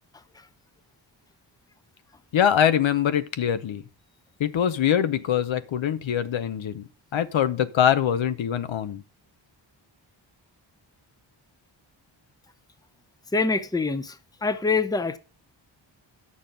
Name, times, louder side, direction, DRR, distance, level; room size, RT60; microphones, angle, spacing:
voice 1, 2.3-3.8 4.4-9.0, left 9 dB, 75° left, 0.8 m, -23 dB
voice 2, 13.3-14.2 14.4-15.2, left 4 dB, 10° left, 0.7 m, -24 dB
9.1 x 6.5 x 5.2 m
wide cardioid pair, 115°, 46 cm